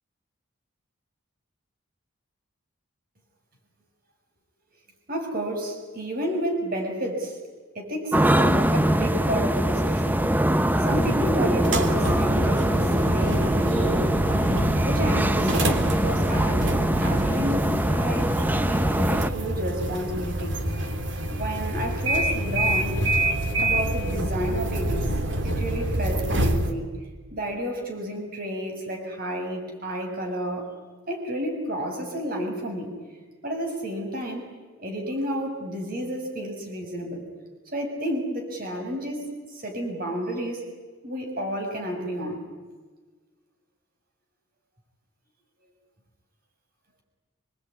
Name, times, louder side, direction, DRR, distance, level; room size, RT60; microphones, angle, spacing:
voice 1, 5.1-7.4 7.8-10.2 10.8-12.7 13.1-14.0 14.8-20.6 21.3-23.0 23.6-25.1 25.4-26.9 27.3-30.7 31.1-32.9 33.4-34.5 34.8-37.3 37.7-40.6 41.0-42.4, equal, 45° right, 2 dB, 7.0 m, -31 dB
sound 1, 8.1-19.3, right 1 dB, 10° right, 0.7 m, -23 dB
sound 2, 10.8-26.7, right 1 dB, 60° right, 2.8 m, -27 dB
26.5 x 22.0 x 9.7 m, 1.4 s
head